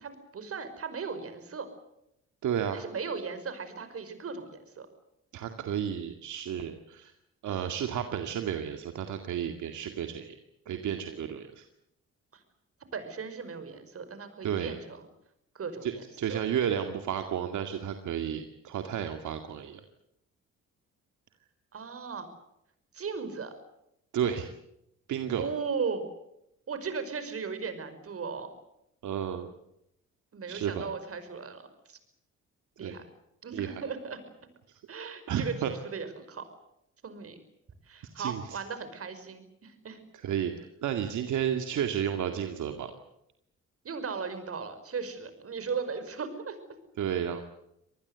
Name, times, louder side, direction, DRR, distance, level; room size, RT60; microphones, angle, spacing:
voice 1, 0.0-1.7 2.7-4.9 12.3-12.4 12.9-15.1 15.5-16.4 21.7-22.3 22.9-23.5 25.4-26.1 26.7-28.5 30.3-31.6 31.9-32.0 32.8-33.0 33.4-34.2 34.9-35.5 35.8-36.4 37.0-37.4 37.9-40.0 43.8-46.6, right 5 dB, 50° right, 10 dB, 5.4 m, -37 dB
voice 2, 2.4-2.8 5.3-7.1 7.4-10.3 10.7-11.6 14.4-14.8 15.8-15.9 16.2-19.8 24.1-24.5 25.1-25.5 29.0-29.5 30.5-30.9 32.8-33.0 33.5-33.8 35.3-35.7 38.2-38.6 40.1-42.9 47.0-47.4, right 9 dB, 75° right, 6 dB, 2.2 m, -32 dB
26.0 x 19.5 x 8.2 m, 0.80 s
cardioid pair, 90°, 30 cm